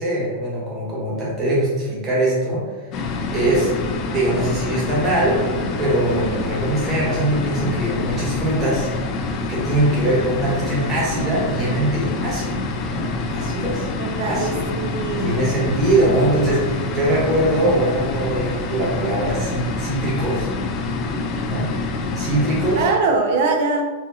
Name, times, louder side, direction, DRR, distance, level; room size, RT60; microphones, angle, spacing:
voice 1, 0.0-2.6 3.3-3.7 4.1-8.9 9.5-12.6 12.9-13.9 14.2-14.7 15.2-20.5 21.5-21.7 22.2-22.8, right 1 dB, 20° right, -6 dB, 1.3 m, -22 dB
sound 1, 2.9-22.8, left 3 dB, 35° left, 0.4 m, -26 dB
voice 2, 6.1-6.4 14.0-15.5 22.7-23.8, right 3 dB, 55° right, 3 dB, 0.6 m, -23 dB
4.3 x 2.4 x 2.8 m, 1.4 s
supercardioid pair, 155°, 0 cm